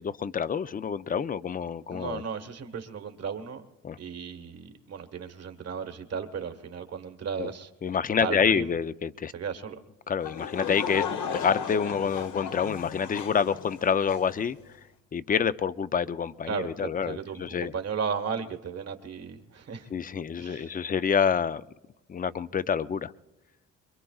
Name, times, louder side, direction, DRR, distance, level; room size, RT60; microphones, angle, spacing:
voice 1, 0.0-2.2 3.8-4.0 7.4-7.5 7.8-9.3 10.1-11.0 11.3-14.6 15.1-17.7 19.9-21.6 22.1-23.1, left 7 dB, 30° left, 0.5 m, -27 dB
voice 2, 1.9-3.6 4.0-7.7 8.2-8.7 9.3-9.8 16.5-19.9 20.4-20.7, right 6 dB, 55° right, 1.5 m, -35 dB
Laughter / Crowd, 10.2-14.4, left 7 dB, 75° left, 1.1 m, -35 dB
25.5 x 23.0 x 2.4 m
cardioid pair, 90°, 30 cm